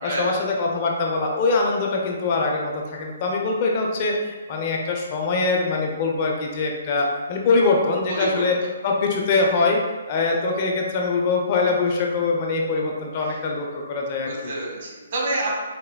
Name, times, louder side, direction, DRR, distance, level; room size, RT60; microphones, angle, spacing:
voice 1, 0.0-8.5 8.8-9.8 10.1-14.5, left 3 dB, 40° left, 0 dB, 0.6 m, -23 dB
voice 2, 8.1-8.7 13.2-13.4 14.2-15.6, right 1 dB, 45° right, -3 dB, 1.2 m, -28 dB
4.3 x 4.2 x 2.2 m, 1.3 s
figure-of-eight pair, 130°, 0 cm